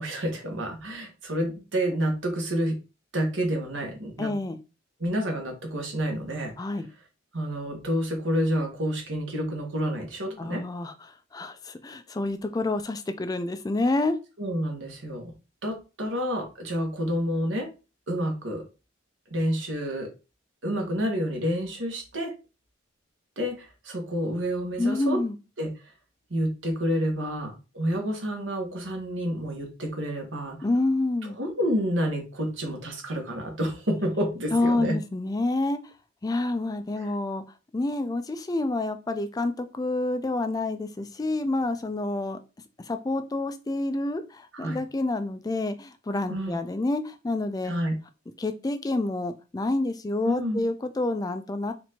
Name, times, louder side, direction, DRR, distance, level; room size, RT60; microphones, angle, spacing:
voice 1, 0.0-2.8 3.1-4.3 5.0-6.5 7.3-10.6 14.4-15.3 15.6-17.7 18.1-18.6 19.3-20.1 20.6-22.3 23.4-25.2 25.6-25.7 26.3-30.6 31.4-35.0 44.5-44.8 46.3-46.6 47.6-47.9 50.2-50.6, equal, 75° right, 2 dB, 1.4 m, -29 dB
voice 2, 4.2-4.6 6.6-6.9 10.4-14.1 24.8-25.4 30.6-31.4 34.5-35.8 36.2-37.4 37.7-42.4 42.8-47.7 48.4-51.7, left 2 dB, 20° left, 9 dB, 0.3 m, -28 dB
4.4 x 2.6 x 4.2 m, 0.30 s
head